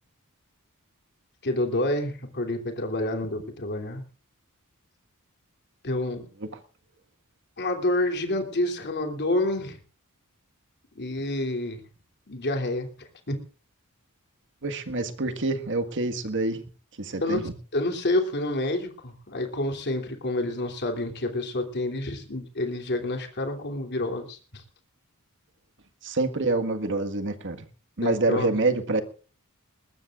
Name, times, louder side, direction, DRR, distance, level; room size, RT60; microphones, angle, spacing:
voice 1, 1.4-4.0 5.8-6.3 7.6-9.8 11.0-11.8 12.3-13.4 17.2-17.4 17.7-24.6 28.0-28.5, left 1 dB, 50° left, 4 dB, 3.0 m, -28 dB
voice 2, 14.6-16.6 17.0-17.5 26.0-27.7 28.0-29.0, right 3 dB, 60° right, 6 dB, 1.7 m, -26 dB
20.5 x 20.0 x 2.5 m, 0.38 s
head